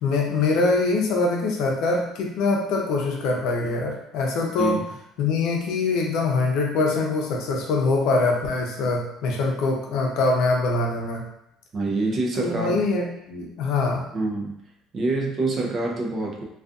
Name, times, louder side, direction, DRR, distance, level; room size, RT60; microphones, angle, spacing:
voice 1, 0.0-4.8 5.2-11.2 12.4-14.0, left 3 dB, 70° left, 0 dB, 0.6 m, -23 dB
voice 2, 4.6-4.9 11.7-12.9 14.1-14.6 14.9-16.4, right 2 dB, 40° right, 0 dB, 0.5 m, -26 dB
2.5 x 2.3 x 2.4 m, 0.79 s
cardioid pair, 115°, 0 cm